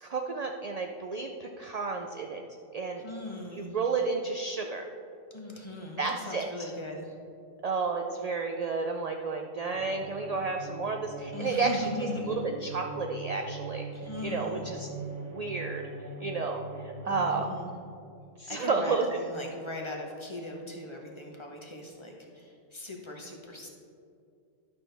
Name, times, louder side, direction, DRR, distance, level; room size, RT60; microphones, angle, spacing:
voice 1, 0.0-2.4 2.7-3.0 3.5-4.8 6.0-6.4 7.6-13.9 14.2-14.9 15.3-15.8 16.2-16.6 17.0-17.5 18.4-19.1, right 4 dB, 65° right, 3 dB, 0.4 m, -31 dB
voice 2, 3.0-3.8 5.3-7.1 11.3-12.4 13.9-14.7 17.0-17.7 18.5-23.7, left 1 dB, 25° left, 0 dB, 1.0 m, -39 dB
sound 1, 9.7-17.9, right 2 dB, 40° right, 1.1 m, -42 dB
11.5 x 6.2 x 3.4 m, 2.4 s
omnidirectional pair, 1.3 m